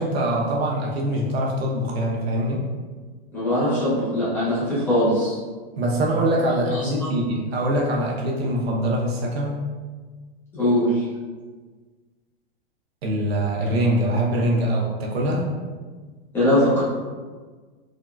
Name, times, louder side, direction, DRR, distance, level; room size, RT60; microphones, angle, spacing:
voice 1, 0.0-2.7 5.8-9.7 13.0-15.5, right 1 dB, 75° right, -2 dB, 0.8 m, -23 dB
voice 2, 3.3-5.3 6.7-7.1 10.5-11.0 16.3-16.8, equal, 5° left, -11 dB, 0.4 m, -21 dB
3.7 x 2.1 x 2.2 m, 1.4 s
supercardioid pair, 155°, 31 cm